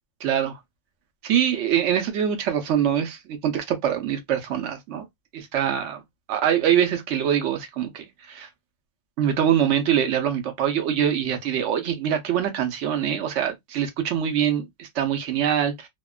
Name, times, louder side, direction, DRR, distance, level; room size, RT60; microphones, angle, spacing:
voice 1, 0.2-0.6 1.2-5.0 5.3-6.0 6.3-8.5 9.2-15.9, right 9 dB, 70° right, 0.7 m, -24 dB
2.8 x 2.2 x 2.2 m
omnidirectional pair, 1.9 m